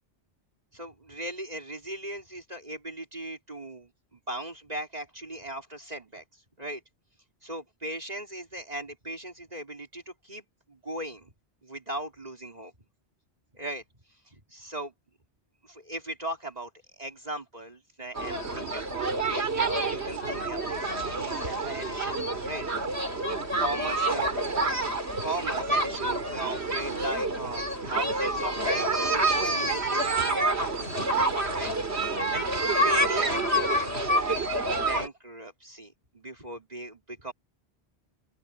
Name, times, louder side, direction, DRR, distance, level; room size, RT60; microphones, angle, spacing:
voice 1, 0.7-6.2 6.6-6.8 7.4-11.3 11.6-12.7 13.5-13.8 14.3-14.9 15.6-22.7 23.6-24.3 24.7-30.9 31.5-31.7 32.3-34.6 34.9-37.3, right 1 dB, 40° right, 3.8 m, -38 dB
sound 1, 18.1-35.1, right 2 dB, 80° right, 3.5 m, -28 dB
open air
omnidirectional pair, 1.1 m